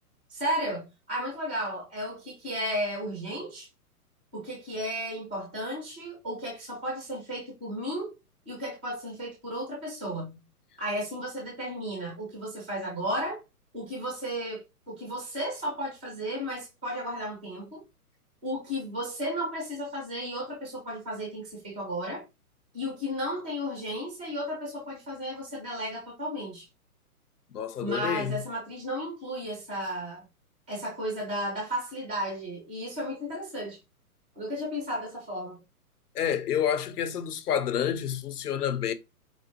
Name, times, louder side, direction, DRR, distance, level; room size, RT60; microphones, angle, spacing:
voice 1, 0.3-3.7 4.3-8.1 8.5-10.4 10.8-13.4 13.7-17.8 18.4-22.2 22.7-26.7 27.8-30.2 30.7-33.8 34.3-35.6, equal, 5° right, 0.4 m, -34 dB
voice 2, 27.5-28.4 36.1-38.9, left 9 dB, 80° left, 0.8 m, -29 dB
4.8 x 2.6 x 2.8 m
hypercardioid pair, 155°, 45 cm